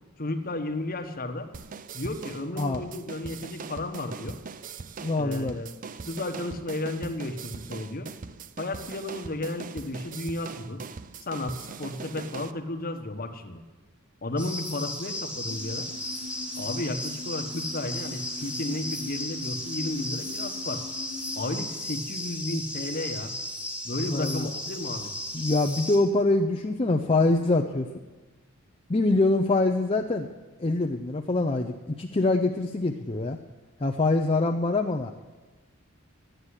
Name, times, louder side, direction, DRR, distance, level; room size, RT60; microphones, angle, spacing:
voice 1, 0.2-1.5 1.9-4.4 5.2-5.7 6.1-8.1 8.6-10.8 11.2-13.6 14.2-15.9 16.5-20.8 21.4-23.3 23.8-25.1, left 2 dB, 45° left, 7 dB, 1.1 m, -33 dB
sound 1, 1.5-12.5, right 5 dB, 40° right, 0.5 m, -41 dB
voice 2, 5.0-5.6 24.1-24.5 25.3-27.9 28.9-30.3 30.6-33.4 33.8-35.1, left 2 dB, 25° left, 2 dB, 0.6 m, -24 dB
sound 2, 14.4-26.0, left 1 dB, 5° right, 1.9 m, -35 dB
sound 3, 15.5-21.6, left 3 dB, 80° right, 1.8 m, -42 dB
11.5 x 9.0 x 9.8 m, 1.3 s
head